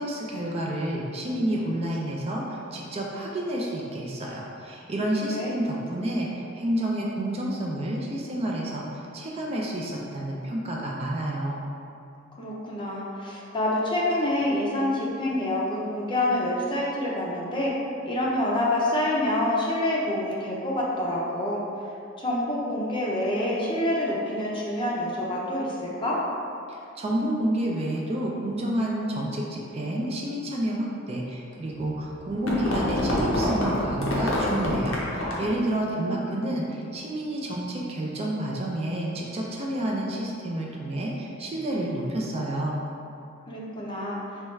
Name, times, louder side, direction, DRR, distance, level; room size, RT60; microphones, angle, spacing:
voice 1, 0.0-11.6 26.7-42.8, right 1 dB, 30° right, -2 dB, 0.4 m, -29 dB
voice 2, 12.4-17.7 18.0-21.6 22.2-26.2 35.8-36.4 43.5-44.4, left 1 dB, 25° left, -5 dB, 0.5 m, -27 dB
sound 1, 31.8-35.6, left 1 dB, 80° left, 0.7 m, -27 dB
4.3 x 2.3 x 3.1 m, 2.6 s
head